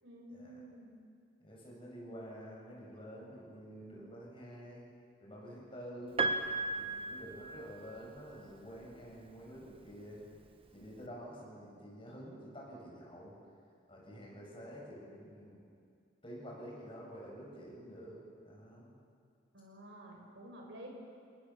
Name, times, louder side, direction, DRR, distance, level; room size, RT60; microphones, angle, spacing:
voice 1, 0.0-0.9 19.5-20.9, right 1 dB, 70° right, 0 dB, 6.3 m, -51 dB
voice 2, 1.4-4.8 5.2-6.2 6.7-10.2 10.7-13.3 13.9-15.6 16.2-18.2 18.4-18.9, equal, 30° left, -3 dB, 7.7 m, -49 dB
Piano, 6.2-8.2 9.5-9.6, right 3 dB, 30° right, 1.4 m, -35 dB
29.5 x 19.0 x 7.5 m, 2.4 s
head